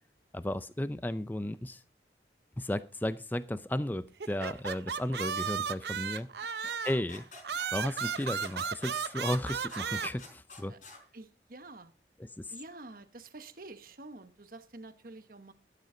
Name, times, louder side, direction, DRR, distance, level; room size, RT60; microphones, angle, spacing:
voice 1, 0.3-1.8 2.6-6.3 6.8-7.2 7.7-10.7 12.2-12.5, left 1 dB, 10° left, 0.5 m, -34 dB
sound 1, 4.2-7.0 7.4-10.1, right 6 dB, 70° right, 0.7 m, -35 dB
sound 2, 6.2-11.0, left 3 dB, 50° left, 4.7 m, -50 dB
voice 2, 6.4-6.7 10.7-10.8 11.1-11.9 12.5-15.5, right 2 dB, 50° right, 1.2 m, -48 dB
12.5 x 12.0 x 3.9 m
head